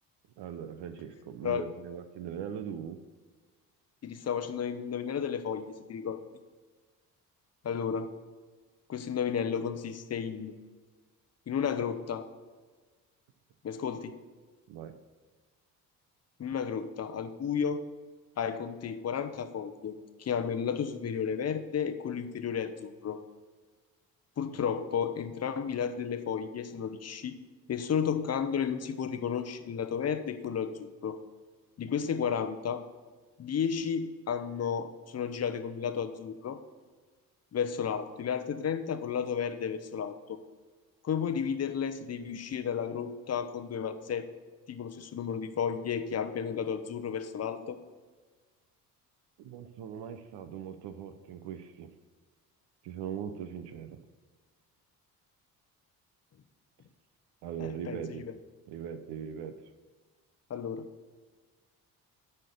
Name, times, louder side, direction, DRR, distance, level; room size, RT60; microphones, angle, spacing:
voice 1, 0.4-3.0 14.7-14.9 49.4-51.9 52.8-54.0 57.4-58.2 58.7-59.5, right 8 dB, 55° right, 9 dB, 0.8 m, -40 dB
voice 2, 4.0-6.2 7.6-8.1 8.9-10.5 11.5-12.3 13.6-14.1 16.4-17.8 18.4-23.2 24.4-27.4 27.7-31.2 31.8-32.8 33.4-36.6 37.5-40.2 41.0-44.3 44.7-47.8 57.6-58.3 60.5-60.9, left 7 dB, 35° left, 10 dB, 0.9 m, -33 dB
9.6 x 4.5 x 6.7 m, 1.4 s
hypercardioid pair, 50°, 47 cm